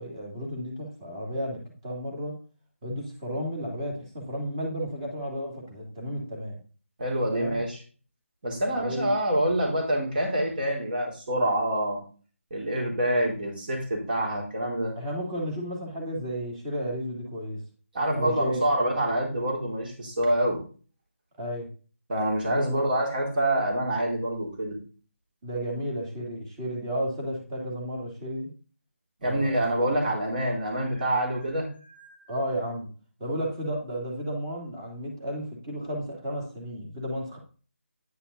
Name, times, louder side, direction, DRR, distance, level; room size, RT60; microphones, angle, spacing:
voice 1, 0.0-2.4 2.8-6.6 7.3-7.6 8.7-9.2 15.0-17.6 18.1-18.6 21.4-21.7 22.4-22.8 25.4-28.5 29.2-29.8 32.3-32.9 33.2-37.4, equal, 20° right, -1 dB, 2.8 m, -33 dB
voice 2, 7.0-7.8 8.4-12.0 12.5-15.0 17.9-20.6 22.1-24.8 29.2-32.1, right 1 dB, 40° right, 0 dB, 3.8 m, -26 dB
9.8 x 5.8 x 4.1 m, 0.37 s
figure-of-eight pair, 165°, 8 cm